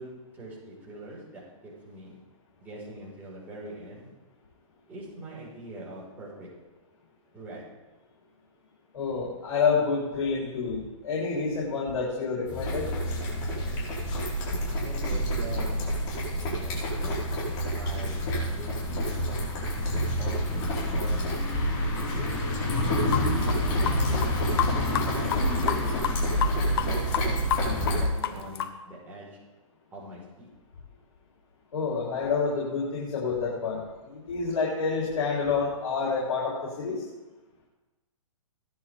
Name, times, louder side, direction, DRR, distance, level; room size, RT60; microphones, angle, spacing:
voice 1, 0.0-2.2 2.6-4.2 4.9-6.5 7.3-7.7 14.7-15.9 16.3-17.3 17.6-19.2 20.1-20.5 20.9-21.4 21.8-22.5 23.2-24.4 25.0-29.4 29.9-30.5, right 2 dB, 10° right, -7 dB, 5.0 m, -42 dB
voice 2, 8.9-12.9 31.7-37.0, left 5 dB, 75° left, -5 dB, 4.2 m, -28 dB
sound 1, 12.5-28.1, equal, 30° left, 4.8 m, -28 dB
sound 2, 22.8-22.9 23.1-24.3 24.6-25.1 25.3-26.9 27.1-28.7, left 11 dB, 45° left, 1.0 m, -28 dB
18.0 x 10.5 x 3.7 m, 1.2 s
hypercardioid pair, 160°, 17 cm